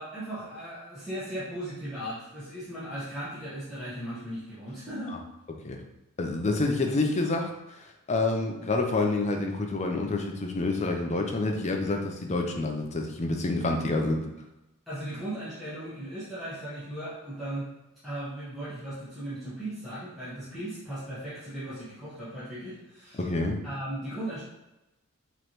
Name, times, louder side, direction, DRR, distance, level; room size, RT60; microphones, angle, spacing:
voice 1, 0.0-5.1 14.9-17.7 18.0-23.2 23.6-24.4, right 1 dB, ahead, -13 dB, 1.2 m, -37 dB
voice 2, 6.2-7.5 7.8-14.2 23.2-23.6, left 2 dB, 30° left, 3 dB, 0.6 m, -28 dB
5.1 x 3.0 x 3.0 m, 0.98 s
head